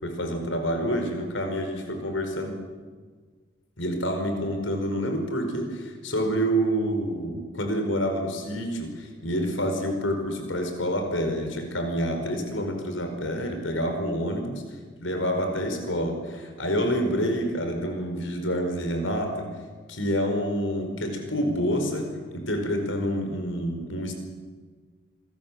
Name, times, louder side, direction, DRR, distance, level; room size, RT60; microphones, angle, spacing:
voice 1, 0.0-2.6 3.8-14.6 15.0-19.5 19.9-24.1, equal, 85° left, 5 dB, 4.9 m, -28 dB
27.5 x 21.5 x 7.5 m, 1.5 s
head